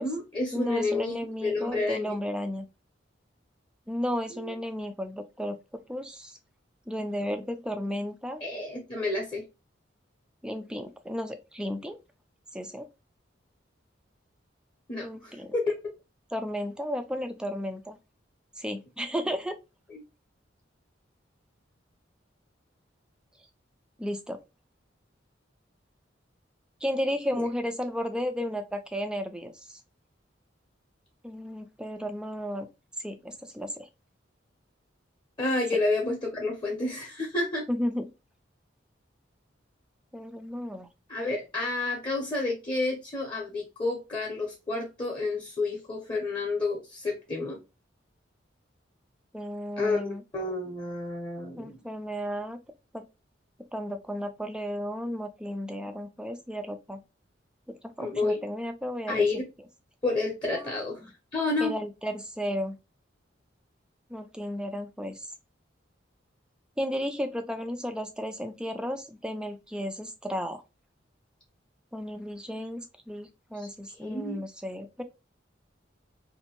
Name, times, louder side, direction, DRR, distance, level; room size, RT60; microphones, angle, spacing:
voice 1, 0.0-1.1 1.4-2.2 4.4-4.5 8.4-9.4 14.9-15.7 19.9-20.0 35.4-37.6 41.1-47.6 49.8-50.1 50.3-51.8 58.0-58.4 59.1-59.4 60.0-61.0 61.3-61.7 73.6-73.7 74.0-74.4, left 3 dB, 25° left, 0.7 m, -30 dB
voice 2, 0.5-2.7 3.9-6.4 6.9-8.4 10.4-12.0 12.5-12.9 15.0-15.5 16.3-18.0 18.6-19.6 24.0-24.4 26.8-29.8 31.2-32.7 33.0-33.9 37.7-38.1 40.1-40.9 49.3-50.2 51.6-52.6 52.9-53.1 53.7-57.0 57.8-59.4 60.6-61.1 61.6-62.8 64.1-65.3 66.8-70.6 71.9-75.0, equal, 5° right, 0.3 m, -33 dB
2.6 x 2.6 x 2.9 m
head